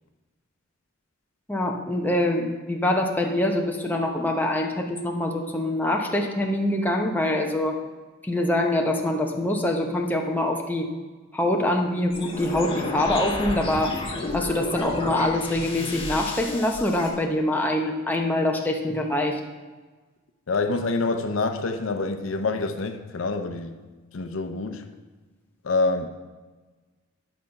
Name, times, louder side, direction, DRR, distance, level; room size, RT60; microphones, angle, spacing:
voice 1, 1.5-7.8 8.2-10.9 11.3-14.0 14.3-19.4, left 1 dB, 10° left, 1 dB, 0.8 m, -24 dB
sound 1, 12.1-17.1, left 2 dB, 25° left, 1.8 m, -32 dB
voice 2, 20.5-23.8 24.1-24.9 25.6-26.1, left 3 dB, 75° left, 7 dB, 0.7 m, -26 dB
11.0 x 5.9 x 5.2 m, 1.3 s
head